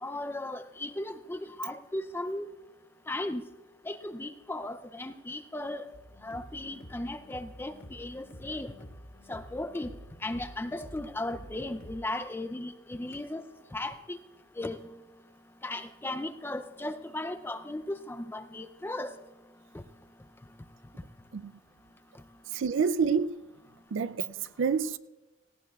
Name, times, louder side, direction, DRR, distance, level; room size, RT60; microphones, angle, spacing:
voice 1, 0.0-2.5 3.1-3.4 3.9-5.9 6.2-8.7 9.3-9.9 10.2-13.4 13.7-14.2 14.6-14.8 15.6-19.2 19.7-19.8, left 1 dB, 10° left, 0.4 m, -36 dB
sound 1, 5.9-12.0, equal, 60° left, 2.6 m, -49 dB
voice 2, 22.5-23.4 23.9-25.0, right 6 dB, 65° right, 0.4 m, -28 dB
17.5 x 17.5 x 2.3 m
head